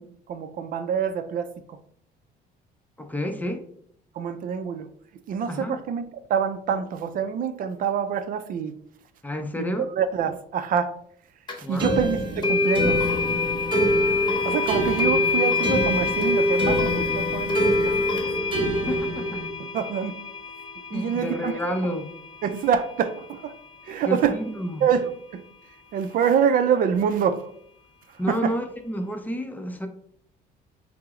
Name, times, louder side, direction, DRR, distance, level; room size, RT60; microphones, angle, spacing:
voice 1, 0.0-1.8 4.1-4.9 5.3-6.0 6.3-8.7 9.6-9.7 9.9-11.0 11.6-12.2 12.5-13.1 14.1-18.2 19.6-20.2 20.9-21.5 22.4-23.5 23.8-24.4 24.8-27.5 28.1-28.5, right 7 dB, 55° right, 0.4 m, -26 dB
voice 2, 3.0-3.7 5.5-5.8 9.2-9.9 11.6-12.0 18.9-19.4 20.9-22.1 24.1-24.9 28.2-29.9, equal, 10° left, 0.5 m, -30 dB
sound 1, 11.5-11.6 12.4-23.4, left 3 dB, 25° left, 0.9 m, -26 dB
sound 2, 11.8-19.5, right 1 dB, 30° right, 1.0 m, -28 dB
5.7 x 2.0 x 3.6 m
cardioid pair, 110°, 17 cm